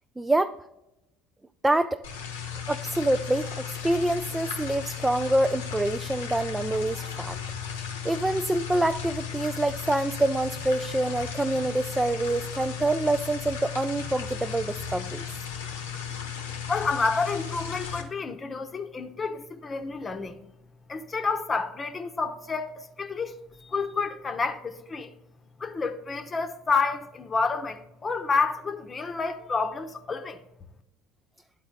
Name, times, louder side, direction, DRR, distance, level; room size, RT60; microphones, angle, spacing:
voice 1, 0.2-0.6 1.6-2.0 2.7-7.4 7.7-15.2, right 1 dB, 10° right, 0.4 m, -26 dB
sound 1, 2.0-18.0, left 7 dB, 90° left, 1.1 m, -35 dB
voice 2, 15.6-16.1 16.7-20.4 20.9-23.3 23.6-25.1 25.6-30.4, left 4 dB, 30° left, 0.8 m, -29 dB
11.0 x 4.1 x 3.8 m
hypercardioid pair, 70°, 0 cm